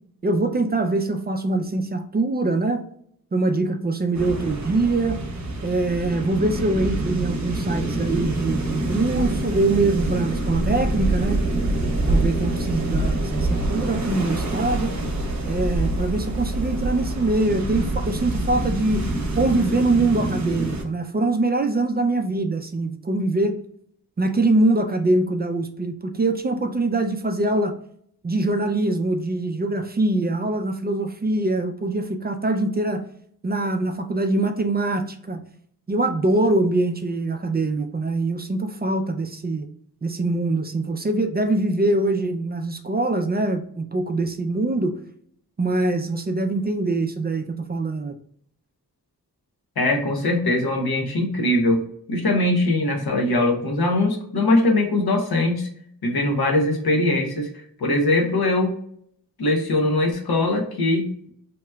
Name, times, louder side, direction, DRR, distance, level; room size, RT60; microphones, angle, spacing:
voice 1, 0.2-2.8 3.3-5.2 5.6-11.4 12.1-15.0 15.5-19.0 19.3-23.5 24.2-27.7 28.2-33.0 33.4-35.4 35.9-39.7 40.0-45.0 45.6-48.2, right 2 dB, 30° right, 7 dB, 0.3 m, -23 dB
sound 1, 4.1-20.8, right 1 dB, 50° right, 0.8 m, -26 dB
voice 2, 49.8-55.7 56.0-57.5 57.8-58.7 59.4-61.1, left 2 dB, 90° left, 2 dB, 0.8 m, -21 dB
2.8 x 2.2 x 3.2 m, 0.65 s
wide cardioid pair, 75°, 36 cm